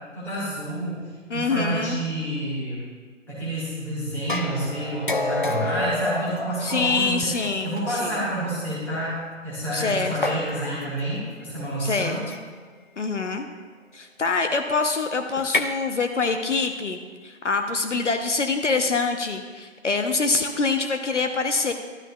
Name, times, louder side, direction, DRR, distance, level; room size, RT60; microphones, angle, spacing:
voice 1, 0.1-2.9 3.3-7.3 7.6-12.2, right 1 dB, 5° left, -10 dB, 1.5 m, -29 dB
voice 2, 1.3-2.0 6.6-8.2 9.7-10.2 11.8-12.2 13.0-13.5 13.9-21.7, left 4 dB, 65° left, 6 dB, 0.8 m, -25 dB
sound 1, 4.3-7.8 8.7-8.8 10.2-11.0 12.3-12.6 15.4-15.6, left 2 dB, 45° left, 0.4 m, -28 dB
11.5 x 10.5 x 2.3 m, 1.5 s
figure-of-eight pair, 150°, 39 cm